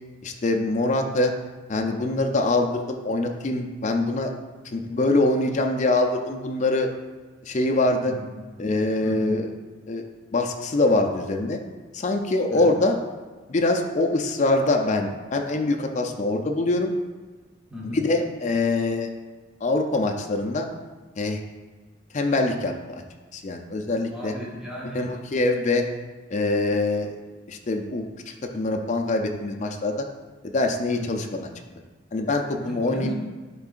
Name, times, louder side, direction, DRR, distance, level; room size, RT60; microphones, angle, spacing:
voice 1, 0.2-1.3 1.7-4.3 4.6-6.9 7.5-8.1 8.6-9.5 9.9-10.0 10.3-11.6 11.9-13.0 13.5-16.9 17.8-19.1 19.6-20.7 21.2-21.4 22.1-23.0 23.3-24.3 24.9-25.8 26.3-27.1 27.5-30.0 30.4-31.5 32.1-33.2, left 2 dB, 35° left, 3 dB, 0.4 m, -24 dB
voice 2, 8.0-8.3 9.0-9.4 12.5-12.7 17.7-18.0 23.9-25.1 30.9-31.2 32.7-33.2, left 1 dB, 5° right, -6 dB, 1.0 m, -36 dB
10.5 x 3.8 x 2.5 m, 1.4 s
head